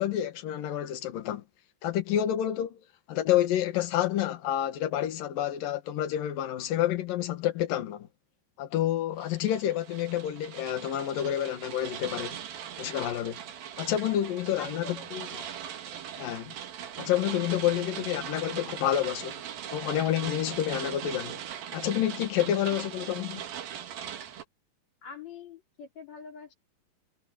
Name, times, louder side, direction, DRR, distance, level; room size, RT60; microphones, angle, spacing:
voice 1, 0.0-1.4 1.8-2.8 3.1-8.1 8.6-12.4 12.8-13.4 13.8-15.3 16.2-16.5 17.0-19.4 19.7-21.4 21.7-23.4, left 11 dB, 55° left, 3.0 m, -29 dB
sound 1, 9.2-24.4, right 9 dB, 60° right, 3.2 m, -40 dB
voice 2, 14.0-15.7 16.1-16.4 25.0-26.5, left 5 dB, 40° left, 5.0 m, -46 dB
omnidirectional pair, 5.3 m